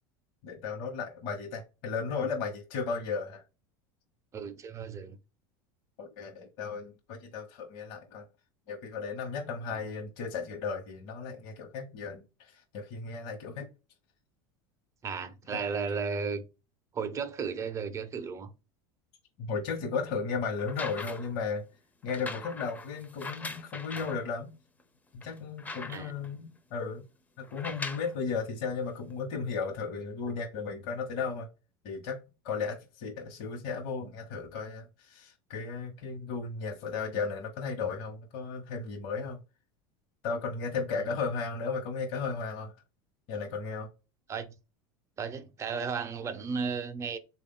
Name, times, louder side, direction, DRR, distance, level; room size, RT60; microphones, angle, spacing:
voice 1, 0.4-3.4 6.0-8.2 8.7-13.7 15.5-15.6 19.4-21.6 22.0-24.5 25.1-27.0 27.4-31.5 31.8-32.2 32.4-39.4 40.2-42.7 43.3-43.9, left 5 dB, 60° left, 1.0 m, -35 dB
voice 2, 4.3-5.2 15.0-16.4 16.9-18.5 25.9-26.1 40.9-41.0 44.3-44.5 45.2-47.2, right 5 dB, 25° right, 0.6 m, -34 dB
sound 1, 20.6-21.4 22.1-24.2 24.8-24.9 25.2-26.3 27.4-28.2 29.1-29.2, left 3 dB, 15° left, 0.6 m, -41 dB
3.6 x 2.4 x 3.7 m
supercardioid pair, 115°, 11 cm